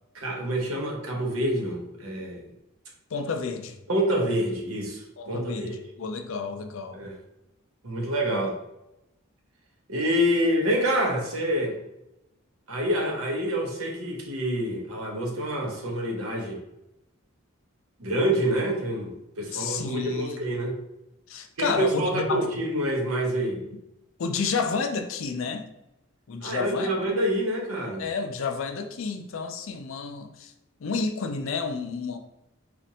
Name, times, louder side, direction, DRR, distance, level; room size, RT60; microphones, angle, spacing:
voice 1, 0.1-2.4 3.9-5.8 6.9-7.1 7.8-8.6 9.9-11.8 12.7-16.6 18.0-20.8 21.6-23.6 26.4-28.0, equal, 85° right, 0 dB, 0.9 m, -27 dB
voice 2, 3.1-3.8 5.2-7.0 19.5-20.4 21.3-22.5 24.2-25.7 26.3-26.9 28.0-30.5 30.8-32.2, left 5 dB, 75° left, 6 dB, 0.4 m, -30 dB
4.3 x 2.5 x 2.7 m, 0.89 s
head